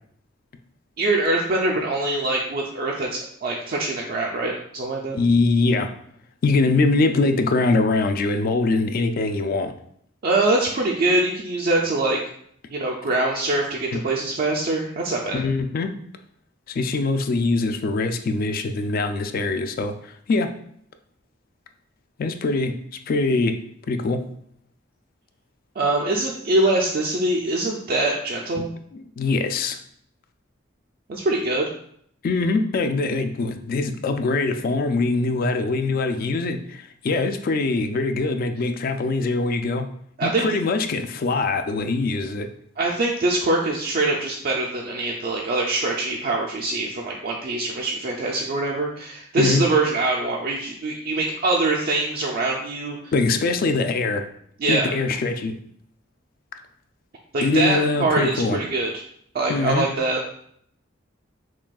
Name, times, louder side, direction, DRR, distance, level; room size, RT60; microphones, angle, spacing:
voice 1, 1.0-5.2 10.2-12.2 12.7-15.4 25.8-28.7 31.1-31.7 40.2-40.5 42.8-53.1 54.6-54.9 57.3-59.0 59.3-60.2, right 2 dB, 50° right, -1 dB, 0.4 m, -23 dB
voice 2, 5.1-5.9 6.4-9.7 13.9-14.0 15.3-15.9 16.7-20.5 22.2-22.7 23.1-23.6 23.9-24.2 28.6-28.7 28.9-29.8 32.2-39.9 40.2-42.5 49.4-49.6 53.1-54.2 54.7-55.6 57.4-58.6 59.5-59.9, left 3 dB, 45° left, 7 dB, 0.3 m, -23 dB
5.9 x 2.3 x 2.3 m, 0.67 s
head